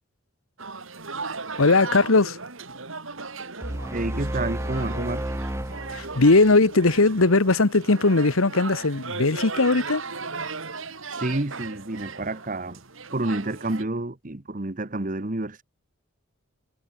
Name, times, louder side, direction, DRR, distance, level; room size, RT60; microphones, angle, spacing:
sound 1, 0.6-13.8, right 4 dB, 70° right, 3.1 m, -37 dB
voice 1, 1.6-2.4 5.9-10.0, left 3 dB, 80° left, 1.3 m, -19 dB
sound 2, 3.6-6.9, right 1 dB, 15° right, 1.2 m, -32 dB
voice 2, 3.9-5.2 11.1-12.8 13.1-15.6, right 2 dB, 40° right, 1.2 m, -29 dB
head